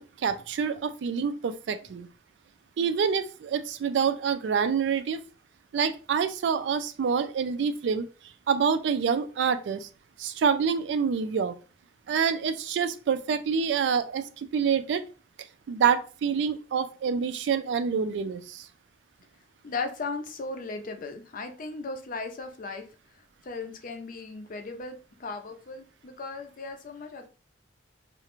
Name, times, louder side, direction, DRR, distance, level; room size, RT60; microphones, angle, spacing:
voice 1, 0.0-2.1 2.8-5.2 5.7-8.1 8.5-9.9 10.2-11.5 12.1-15.0 15.7-18.7, right 6 dB, 70° right, 10 dB, 0.3 m, -27 dB
voice 2, 19.6-22.8 23.4-27.3, left 3 dB, 50° left, 5 dB, 0.5 m, -37 dB
2.4 x 2.1 x 2.9 m, 0.36 s
head